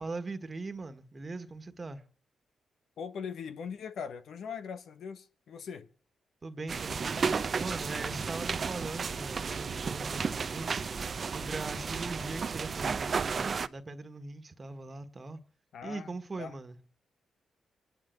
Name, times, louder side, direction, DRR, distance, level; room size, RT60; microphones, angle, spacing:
voice 1, 0.0-2.0 6.4-7.2 7.5-10.8 11.2-15.4 15.8-16.8, right 3 dB, 35° right, 1.6 m, -40 dB
voice 2, 3.0-5.9 15.7-16.5, left 6 dB, 80° left, 1.2 m, -41 dB
sound 1, 6.7-13.7, right 5 dB, 50° right, 0.7 m, -33 dB
26.0 x 10.5 x 4.6 m
cardioid pair, 80°, 0 cm